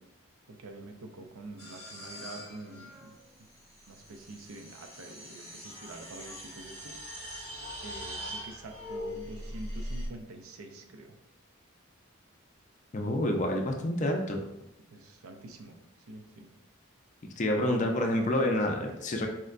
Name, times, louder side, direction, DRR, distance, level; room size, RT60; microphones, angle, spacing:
voice 1, 0.6-3.1 3.9-7.0 7.8-11.1 14.9-15.7 16.1-16.5, right 2 dB, 90° right, 5 dB, 0.5 m, -46 dB
sound 1, 1.6-10.1, equal, 30° right, 0.7 m, -42 dB
voice 2, 12.9-14.4 17.4-19.3, left 1 dB, 35° left, 2 dB, 0.4 m, -28 dB
4.3 x 2.1 x 2.4 m, 0.91 s
head